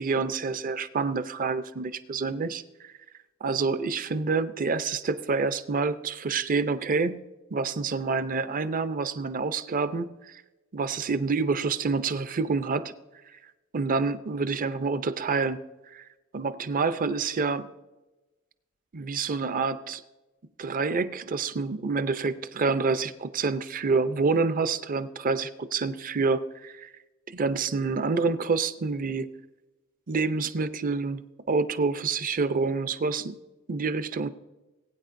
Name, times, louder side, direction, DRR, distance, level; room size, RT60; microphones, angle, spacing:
voice 1, 0.0-2.9 3.4-7.2 7.5-10.4 10.7-12.9 13.7-15.6 15.9-16.0 16.3-17.7 18.9-20.0 20.6-26.9 27.3-29.3 30.1-33.4 33.7-34.3, right 4 dB, 40° right, 13 dB, 0.5 m, -27 dB
20.5 x 9.0 x 2.6 m, 1.1 s
head